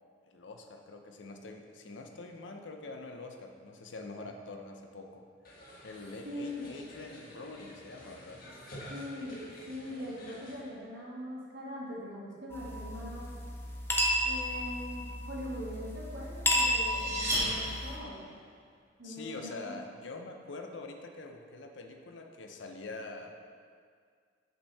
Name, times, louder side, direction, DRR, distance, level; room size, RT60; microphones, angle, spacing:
voice 1, 0.3-5.2 5.8-8.4 16.6-17.1 19.0-23.3, left 3 dB, 70° left, 4 dB, 0.7 m, -45 dB
sound 1, 5.5-10.6, equal, 50° left, 1.4 m, -49 dB
voice 2, 6.2-6.7 8.9-13.3 14.2-18.3 19.0-19.8, equal, 75° right, -5 dB, 1.8 m, -42 dB
sound 2, 12.5-18.0, left 1 dB, 10° left, 0.7 m, -32 dB
sound 3, 16.4-18.3, equal, 15° right, 1.5 m, -34 dB
8.2 x 5.9 x 3.4 m, 2.1 s
head